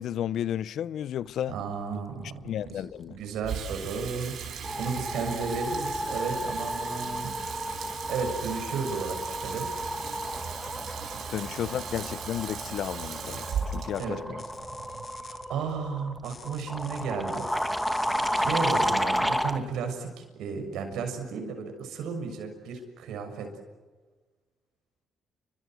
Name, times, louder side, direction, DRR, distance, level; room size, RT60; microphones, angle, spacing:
voice 1, 0.0-1.5 2.4-3.2 11.3-13.5 13.7-14.4, left 10 dB, 70° left, 0.8 m, -32 dB
voice 2, 1.5-2.4 2.7-4.3 4.8-7.3 7.8-9.7 11.1-11.7 14.0-14.2 15.3-17.5 18.3-23.5, right 5 dB, 85° right, 6.7 m, -34 dB
Water tap faucet / Sink (filling or washing), 3.4-15.8, right 7 dB, 70° right, 5.5 m, -38 dB
sound 1, 3.8-4.1 4.4-19.6, equal, ahead, 2.4 m, -32 dB
sound 2, 13.3-13.4 14.0-14.1 14.4-15.5 16.2-18.9, left 5 dB, 40° left, 2.5 m, -48 dB
30.0 x 25.0 x 7.8 m
cardioid pair, 90°, 0 cm